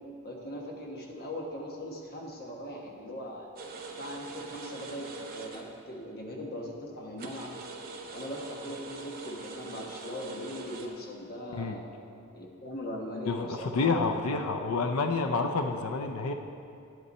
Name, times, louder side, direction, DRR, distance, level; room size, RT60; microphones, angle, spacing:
voice 1, 0.2-3.5 3.9-7.5 8.1-11.8 12.3-14.2, equal, 45° left, -1 dB, 1.2 m, -40 dB
sound 1, 3.6-5.9 6.2-6.3 6.8-6.9 7.2-10.9, right 3 dB, 40° right, 0.8 m, -43 dB
voice 2, 13.3-16.3, left 4 dB, 75° left, 5 dB, 0.5 m, -29 dB
10.0 x 8.2 x 4.2 m, 2.6 s
head